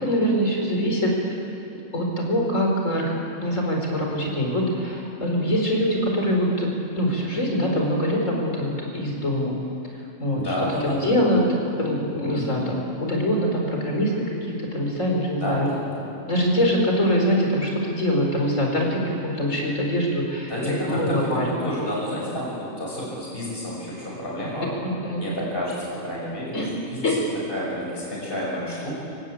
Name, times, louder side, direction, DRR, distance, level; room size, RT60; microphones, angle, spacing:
voice 1, 0.0-1.4 1.9-3.0 3.4-6.7 7.0-9.5 10.2-10.5 10.8-11.4 11.8-14.1 14.4-15.7 16.3-21.5 25.0-25.2 26.5-26.7 27.0-27.2, equal, 70° left, 0 dB, 4.7 m, -23 dB
voice 2, 10.3-11.3 12.3-12.5 15.4-16.0 20.5-24.7 25.2-26.5 26.9-27.1 27.5-29.0, equal, 45° left, -5 dB, 6.9 m, -30 dB
24.5 x 18.5 x 8.4 m, 2.7 s
omnidirectional pair, 1.4 m